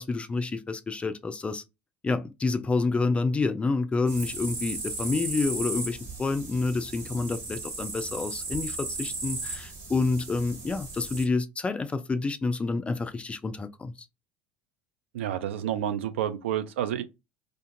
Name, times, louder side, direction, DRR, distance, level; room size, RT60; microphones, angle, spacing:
voice 1, 0.0-1.6 2.0-13.9, left 3 dB, 15° left, 0.3 m, -28 dB
sound 1, 4.1-11.2, right 3 dB, 50° right, 1.4 m, -36 dB
voice 2, 15.1-17.0, right 10 dB, 70° right, 0.3 m, -29 dB
2.4 x 2.4 x 2.5 m
figure-of-eight pair, 65°, 7 cm